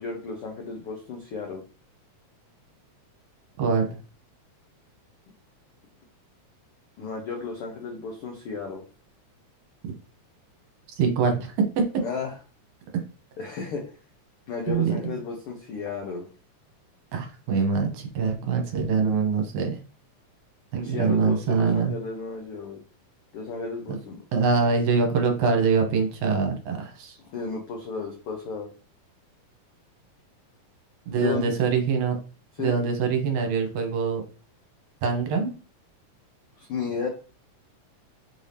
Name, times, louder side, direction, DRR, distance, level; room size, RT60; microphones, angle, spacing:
voice 1, 0.0-1.6 7.0-8.8 12.0-12.3 13.4-13.8 14.5-16.3 20.8-22.8 23.3-24.2 27.2-28.7 31.1-31.5 32.6-32.8 36.6-37.1, left 4 dB, 80° left, 0 dB, 1.2 m, -33 dB
voice 2, 3.6-3.9 11.0-11.8 14.7-15.0 17.1-19.8 20.7-21.9 24.3-27.2 31.1-32.2 32.6-34.2 35.0-35.5, right 5 dB, 75° right, 4 dB, 2.1 m, -24 dB
5.3 x 2.7 x 3.2 m, 0.36 s
omnidirectional pair, 3.6 m